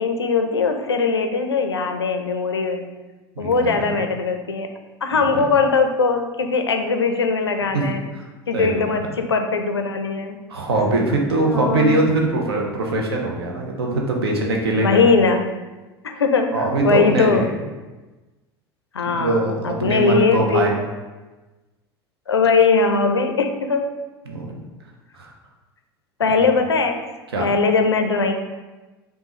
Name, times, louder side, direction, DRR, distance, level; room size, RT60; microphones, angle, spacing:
voice 1, 0.0-2.9 3.4-4.7 5.0-8.0 8.5-10.4 11.5-12.0 14.8-15.6 16.0-17.5 18.9-20.8 22.3-23.8 26.2-27.1 27.4-28.3, left 4 dB, 85° left, 6 dB, 0.4 m, -20 dB
voice 2, 3.4-3.9 5.2-5.4 7.7-7.8 8.1-8.3 8.5-8.9 10.5-15.0 16.5-17.5 19.0-20.8 24.3-24.6 25.1-25.3 26.3-26.4 27.3-27.5, right 2 dB, 70° right, 1 dB, 0.7 m, -22 dB
5.2 x 2.4 x 2.9 m, 1.2 s
figure-of-eight pair, 75°, 13 cm